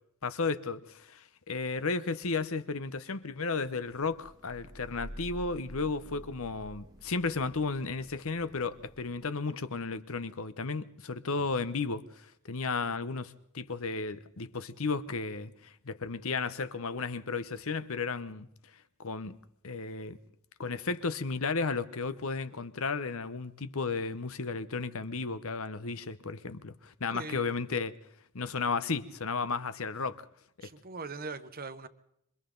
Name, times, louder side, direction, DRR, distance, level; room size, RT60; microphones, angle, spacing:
voice 1, 0.2-18.5 19.0-19.4 19.6-20.2 20.6-27.9 28.3-30.2, left 4 dB, 65° left, 1.0 m, -34 dB
Thunder / Rain, 3.6-9.4, equal, 15° right, 1.7 m, -49 dB
voice 2, 27.1-27.5 30.6-31.9, right 4 dB, 40° right, 1.2 m, -41 dB
27.5 x 24.5 x 3.9 m
head